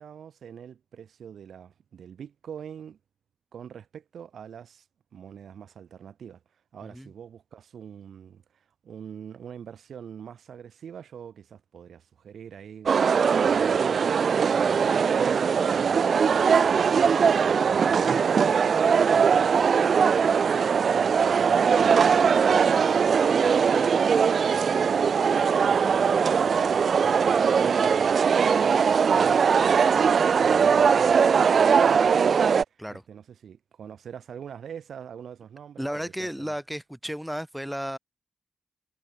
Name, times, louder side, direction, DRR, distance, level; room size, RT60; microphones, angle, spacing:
voice 1, 0.0-3.0 3.5-4.8 5.1-6.4 6.7-14.9 15.2-20.6 20.9-25.2 25.7-32.4 32.7-36.6, right 8 dB, 85° right, 6.7 m, -44 dB
sound 1, 12.9-32.6, right 6 dB, 65° right, 1.0 m, -21 dB
voice 2, 35.8-38.0, equal, 5° right, 7.5 m, -33 dB
wide cardioid pair, 95°, 0 cm